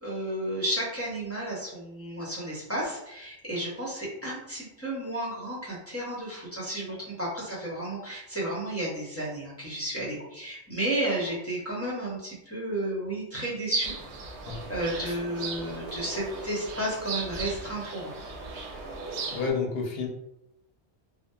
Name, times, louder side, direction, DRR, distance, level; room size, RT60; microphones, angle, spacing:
voice 1, 0.0-13.9 14.7-18.1, right 1 dB, 15° left, -7 dB, 0.6 m, -32 dB
sound 1, 13.8-19.5, right 3 dB, 85° right, 0.9 m, -38 dB
voice 2, 19.3-20.1, left 5 dB, 70° left, 1 dB, 0.8 m, -30 dB
2.7 x 2.1 x 2.2 m, 0.84 s
omnidirectional pair, 1.1 m